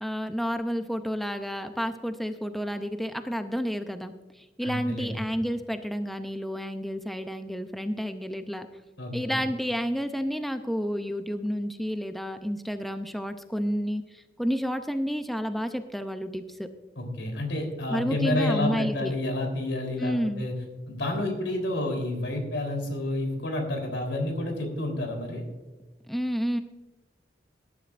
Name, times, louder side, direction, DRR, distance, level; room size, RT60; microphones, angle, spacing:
voice 1, 0.0-8.7 9.1-16.7 17.9-19.1 20.0-20.4 26.1-26.6, equal, ahead, 8 dB, 0.5 m, -30 dB
voice 2, 4.6-5.1 9.0-9.4 16.9-20.5 20.9-25.4, left 1 dB, 85° left, 3 dB, 3.5 m, -29 dB
18.0 x 11.0 x 2.5 m, 1.2 s
head